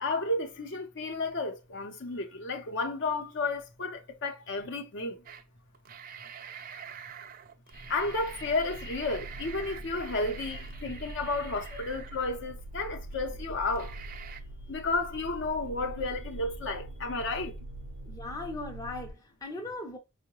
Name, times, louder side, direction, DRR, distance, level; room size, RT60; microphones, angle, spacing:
voice 1, 0.0-5.2 7.9-13.9 14.7-17.5, left 3 dB, 55° left, 0.6 m, -32 dB
sound 1, 5.3-5.4 5.7-12.6 13.1-13.2 13.7-14.4, right 8 dB, 40° right, 0.3 m, -46 dB
sound 2, 7.7-19.1, right 1 dB, 85° right, 0.6 m, -43 dB
voice 2, 18.0-20.0, left 2 dB, 15° left, 0.5 m, -39 dB
4.5 x 2.1 x 2.9 m
head